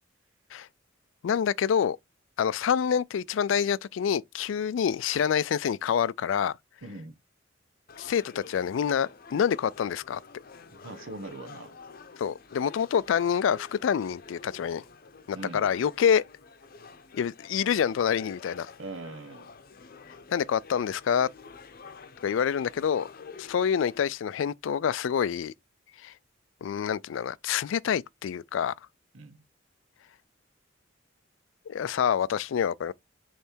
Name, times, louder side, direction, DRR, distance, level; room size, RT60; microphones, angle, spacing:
voice 1, 1.2-2.0 2.4-6.6 8.0-10.2 12.2-14.8 15.3-16.2 17.1-18.7 20.3-21.3 22.2-23.1 23.4-25.5 26.0-26.1 26.6-28.7 31.7-32.9, left 8 dB, 70° left, 0.3 m, -27 dB
voice 2, 6.8-7.2 10.7-11.7 15.3-15.7 18.8-19.5 29.1-29.4, right 2 dB, 85° right, 1.0 m, -41 dB
sound 1, 7.9-24.0, left 4 dB, 50° left, 0.7 m, -49 dB
6.7 x 3.2 x 4.5 m
head